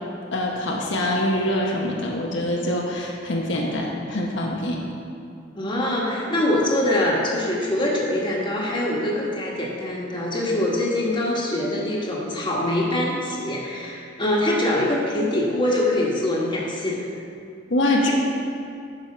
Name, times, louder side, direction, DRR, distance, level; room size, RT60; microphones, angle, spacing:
voice 1, 0.3-4.8 17.7-18.1, left 1 dB, 70° left, -1 dB, 1.0 m, -24 dB
voice 2, 5.5-17.1, left 1 dB, 25° left, -3 dB, 1.4 m, -24 dB
11.0 x 4.9 x 4.9 m, 2.4 s
head